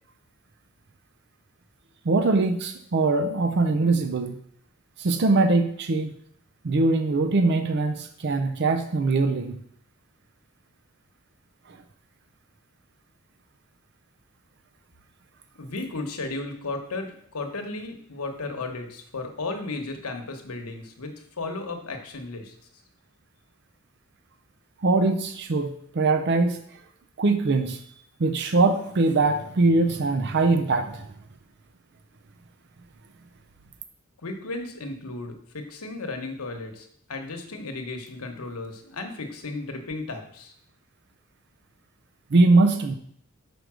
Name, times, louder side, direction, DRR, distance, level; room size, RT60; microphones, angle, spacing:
voice 1, 2.0-4.4 5.0-6.1 6.6-9.6 24.8-26.6 27.2-27.9 28.2-31.1 42.3-42.9, right 3 dB, 50° right, 6 dB, 0.5 m, -22 dB
voice 2, 15.5-22.5 34.2-40.5, left 3 dB, 85° left, 4 dB, 1.1 m, -34 dB
5.1 x 4.7 x 6.1 m, 0.65 s
head